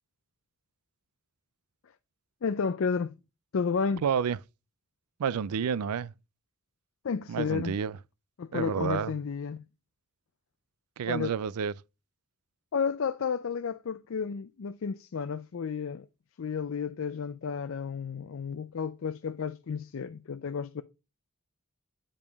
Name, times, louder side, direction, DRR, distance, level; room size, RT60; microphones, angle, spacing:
voice 1, 2.4-3.2 3.5-4.0 7.0-7.8 8.4-9.6 11.1-11.3 12.7-16.1 16.4-20.8, left 6 dB, 65° left, 0.4 m, -32 dB
voice 2, 4.0-4.4 5.2-6.1 7.3-8.0 8.5-9.1 11.0-11.7, right 7 dB, 90° right, 0.4 m, -29 dB
8.7 x 5.1 x 3.4 m
head